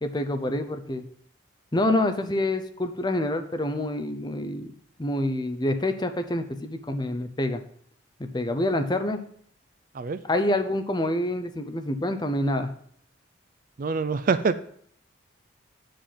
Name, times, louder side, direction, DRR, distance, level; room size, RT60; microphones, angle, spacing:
voice 1, 0.0-1.0 1.7-4.7 5.0-7.6 8.2-9.2 10.3-12.7, left 1 dB, 20° left, 8 dB, 0.6 m, -27 dB
voice 2, 13.8-14.6, right 4 dB, 45° right, 12 dB, 0.4 m, -25 dB
8.5 x 5.2 x 5.8 m, 0.63 s
head